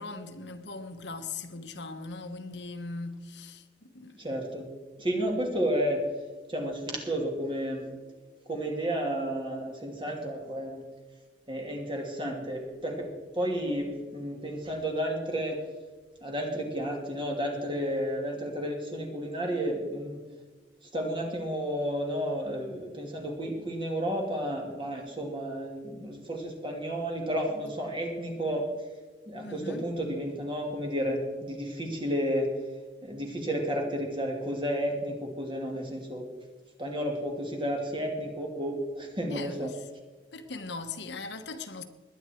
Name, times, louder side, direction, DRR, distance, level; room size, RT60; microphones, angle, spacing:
voice 1, 0.0-4.2 29.4-29.9 39.3-39.8 40.3-41.8, left 3 dB, 80° left, 1.2 m, -39 dB
voice 2, 4.2-4.7 5.0-6.0 6.5-7.9 8.5-10.8 11.5-15.6 16.2-20.2 20.9-28.6 29.3-32.5 33.0-36.2 36.8-39.7, equal, 30° right, 2.8 m, -32 dB
20.5 x 9.2 x 4.6 m
head